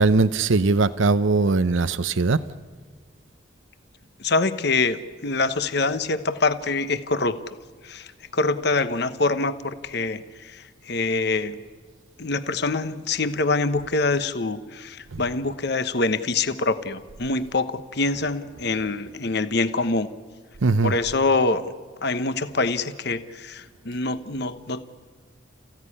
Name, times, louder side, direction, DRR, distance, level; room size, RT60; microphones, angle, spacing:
voice 1, 0.0-2.4 15.1-15.2 20.6-20.9, right 3 dB, 75° right, 0.7 m, -20 dB
voice 2, 4.2-7.4 7.8-11.6 12.2-20.1 20.8-21.7 22.0-24.8, left 3 dB, 55° left, 1.0 m, -25 dB
29.5 x 16.0 x 9.9 m
head